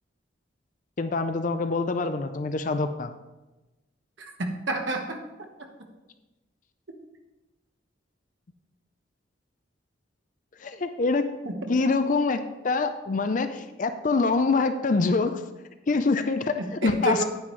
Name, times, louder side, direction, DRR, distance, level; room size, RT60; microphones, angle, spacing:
voice 1, 1.0-3.1 10.6-11.3 11.7-15.3 15.9-17.2, left 3 dB, 40° left, 9 dB, 0.4 m, -25 dB
voice 2, 4.2-5.2 11.4-11.5 16.6-17.3, right 2 dB, 70° right, 3 dB, 1.2 m, -29 dB
9.5 x 9.3 x 3.2 m, 1.1 s
head